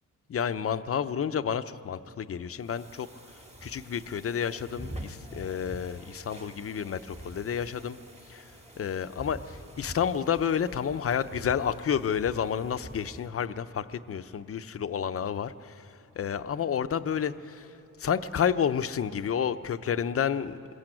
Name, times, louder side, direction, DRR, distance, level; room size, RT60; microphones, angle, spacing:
voice 1, 0.3-3.1 3.6-8.0 8.3-8.4 8.8-15.7 16.2-17.7 18.0-20.6, left 8 dB, 45° left, 11 dB, 0.7 m, -30 dB
sound 1, 2.6-13.3, right 1 dB, 20° right, 1.8 m, -46 dB
27.5 x 22.0 x 9.0 m, 3.0 s
wide cardioid pair, 165°, 33 cm